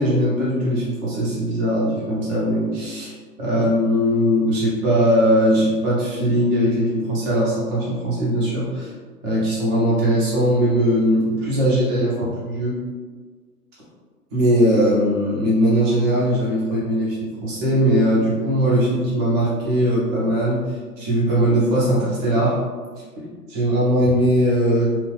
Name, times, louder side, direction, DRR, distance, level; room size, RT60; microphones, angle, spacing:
voice 1, 0.0-3.1 3.4-8.9 9.2-12.8 14.3-20.6 21.0-22.6 23.5-25.1, equal, 20° right, -6 dB, 0.7 m, -20 dB
3.0 x 2.3 x 3.2 m, 1.5 s
figure-of-eight pair, 120°, 47 cm